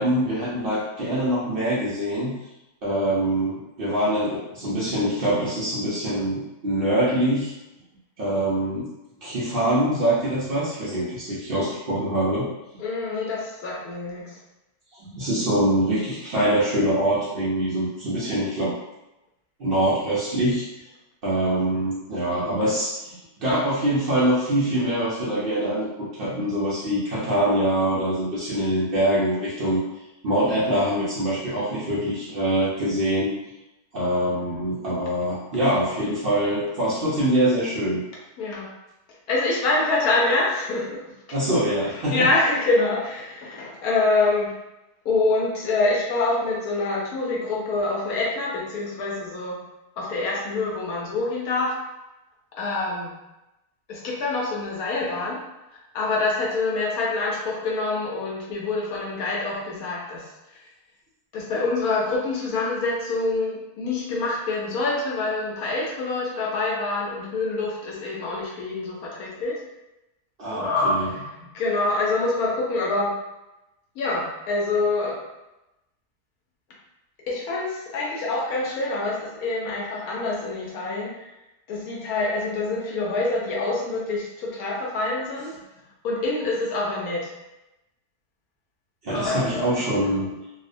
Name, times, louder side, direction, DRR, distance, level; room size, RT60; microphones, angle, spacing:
voice 1, 0.0-2.3 2.8-7.5 8.2-8.9 9.2-12.5 15.1-18.7 19.6-20.6 21.2-29.8 30.2-33.3 33.9-38.0 41.3-42.2 70.4-71.1 89.0-90.3, right 1 dB, 80° right, -8 dB, 0.5 m, -24 dB
voice 2, 12.8-14.4 38.4-38.7 39.3-41.0 42.1-44.5 45.0-49.6 50.0-51.7 52.5-53.1 53.9-55.4 55.9-60.2 61.3-69.6 70.5-73.1 74.0-75.2 77.3-81.1 81.7-85.6 86.0-87.3 89.1-89.9, left 2 dB, 70° left, -3 dB, 1.0 m, -26 dB
2.7 x 2.1 x 2.5 m, 0.95 s
omnidirectional pair, 1.7 m